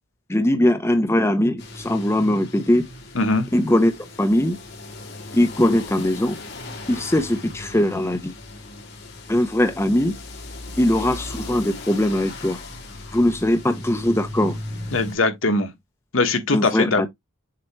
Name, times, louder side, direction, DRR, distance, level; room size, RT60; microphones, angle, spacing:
voice 1, 0.3-2.8 3.5-3.9 4.2-4.6 5.3-6.4 6.9-8.3 9.3-10.1 10.8-12.6 13.1-14.6 16.5-17.1, left 1 dB, 15° left, 0.6 m, -20 dB
sound 1, 1.6-15.1, left 2 dB, 55° left, 2.9 m, -37 dB
voice 2, 3.1-3.5 14.9-15.7 16.1-17.1, left 2 dB, 70° left, 1.3 m, -21 dB
7.5 x 2.9 x 4.5 m
head